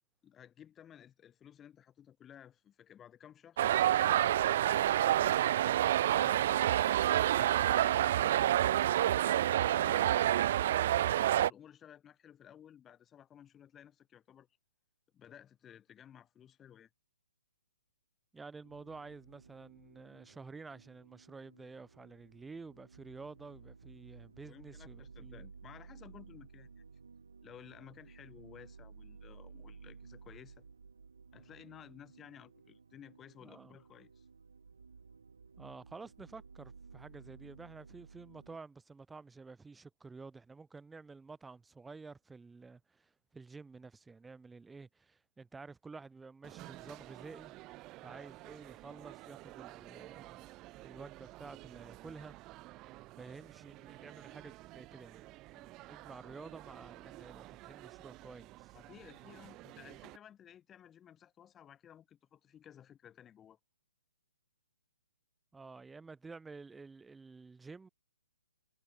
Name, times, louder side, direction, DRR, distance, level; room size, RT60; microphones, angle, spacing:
voice 1, 0.2-4.3 4.6-5.7 6.1-8.4 9.3-10.3 11.1-14.5 15.1-16.9 24.4-26.8 27.4-30.7 31.3-34.3 58.7-63.6, left 9 dB, 15° left, 6.0 m, -56 dB
sound 1, 3.6-11.5, right 12 dB, 45° right, 0.7 m, -28 dB
voice 2, 18.3-25.4 33.4-33.8 35.6-47.5 48.0-52.4 53.2-58.7 65.5-67.9, right 4 dB, 5° right, 3.3 m, -51 dB
sound 2, 18.6-38.6, right 5 dB, 80° right, 7.8 m, -56 dB
sound 3, 46.4-60.2, right 19 dB, 25° right, 1.9 m, -52 dB
hypercardioid pair, 145°, 0 cm